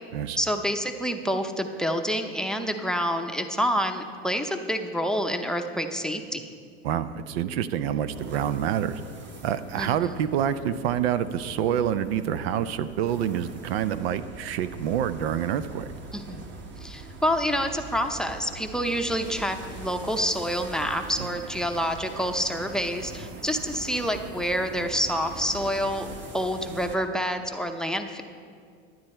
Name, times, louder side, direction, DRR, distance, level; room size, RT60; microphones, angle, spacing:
voice 1, 0.4-6.4 9.8-10.1 16.1-16.4 16.8-26.1 26.3-28.2, equal, ahead, 6 dB, 0.6 m, -28 dB
voice 2, 6.8-9.0 9.4-15.9 21.2-21.3, right 9 dB, 80° right, 13 dB, 0.6 m, -27 dB
sound 1, 8.1-27.0, right 3 dB, 40° right, 1.4 m, -42 dB
12.0 x 9.4 x 4.3 m, 2.1 s
supercardioid pair, 105°, 30 cm